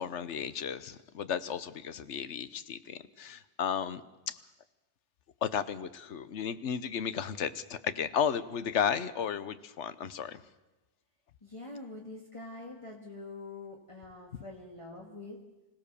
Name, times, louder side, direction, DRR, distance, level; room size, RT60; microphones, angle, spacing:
voice 1, 0.0-4.0 4.3-4.4 5.4-10.4, left 8 dB, 75° left, 14 dB, 1.2 m, -34 dB
voice 2, 11.4-15.4, left 2 dB, 25° left, -2 dB, 2.1 m, -45 dB
25.5 x 16.5 x 6.9 m, 1.1 s
omnidirectional pair, 1.2 m